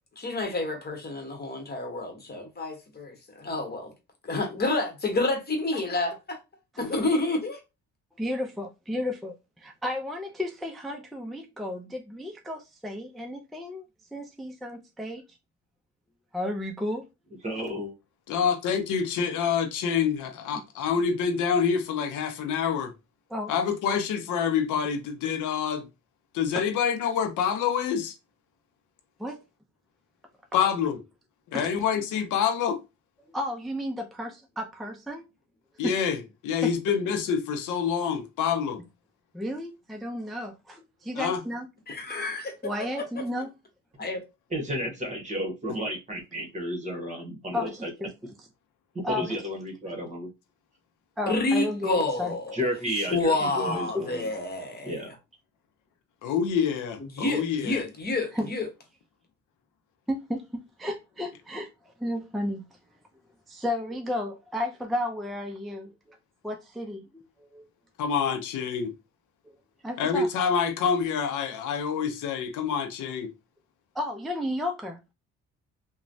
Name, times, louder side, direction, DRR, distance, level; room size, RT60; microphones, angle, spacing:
voice 1, 0.2-3.9 4.2-6.4 6.8-7.6 41.9-42.5 44.0-44.2 51.2-52.6 52.9-55.2 57.1-58.7, left 2 dB, 30° left, 1.1 m, -29 dB
voice 2, 8.2-13.8 14.1-15.2 16.3-17.0 23.3-23.5 26.6-26.7 29.2-29.4 30.5-30.7 31.5-31.7 33.3-35.2 35.8-35.9 36.6-36.7 39.3-41.7 42.6-43.5 47.5-48.1 49.0-49.4 51.2-52.4 53.7-54.0 58.3-58.5 60.1-60.4 60.8-61.7 62.0-62.6 63.5-66.2 66.4-67.2 67.5-67.7 69.8-70.3 73.9-75.0, left 1 dB, ahead, 0.4 m, -33 dB
voice 3, 17.4-18.0 44.5-47.9 49.1-50.3 52.5-54.3 54.8-55.1, equal, 25° right, 1.2 m, -32 dB
voice 4, 18.3-22.9 23.5-25.9 26.3-28.1 30.5-31.0 31.5-32.8 35.8-38.8 41.2-41.4 56.2-57.8 68.0-68.9 70.0-73.3, left 7 dB, 80° left, 0.6 m, -27 dB
3.0 x 2.2 x 2.6 m
cardioid pair, 90°, 30 cm